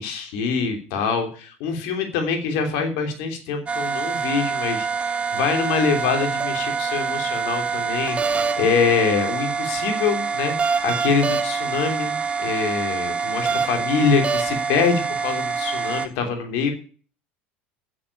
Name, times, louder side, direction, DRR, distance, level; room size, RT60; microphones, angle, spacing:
voice 1, 0.0-16.7, left 5 dB, 65° left, 5 dB, 3.2 m, -24 dB
sound 1, 3.7-16.1, right 5 dB, 20° right, 1.5 m, -25 dB
9.8 x 8.0 x 8.7 m, 0.41 s
supercardioid pair, 100°, 6 cm